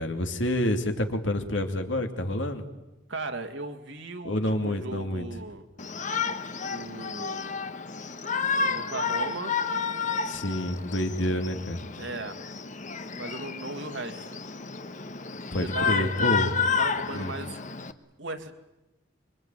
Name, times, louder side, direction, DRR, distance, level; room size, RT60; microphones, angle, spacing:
voice 1, 0.0-2.6 4.2-5.3 10.3-11.8 15.5-16.5 17.1-17.3, left 1 dB, 80° left, 6 dB, 2.8 m, -28 dB
voice 2, 3.1-5.6 6.6-7.6 8.6-9.5 12.0-12.4 13.1-14.4 15.6-16.1 16.4-16.5 16.8-17.6 18.2-18.5, right 2 dB, 75° right, 6 dB, 2.5 m, -37 dB
Shout, 5.8-17.9, left 5 dB, 40° left, 1.2 m, -31 dB
25.5 x 23.5 x 9.3 m, 0.99 s
head